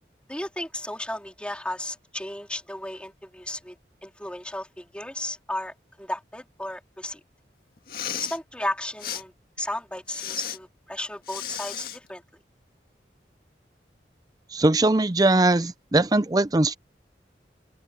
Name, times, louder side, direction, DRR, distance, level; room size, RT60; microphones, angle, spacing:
voice 1, 0.3-3.8 4.0-7.2 8.1-9.3 9.6-12.2, left 1 dB, 5° left, 3.7 m, -34 dB
Respiratory sounds, 7.8-8.4 9.0-9.2 10.1-10.6 11.2-12.0, left 9 dB, 55° left, 1.9 m, -34 dB
voice 2, 14.5-16.7, right 2 dB, 20° right, 0.5 m, -20 dB
open air
head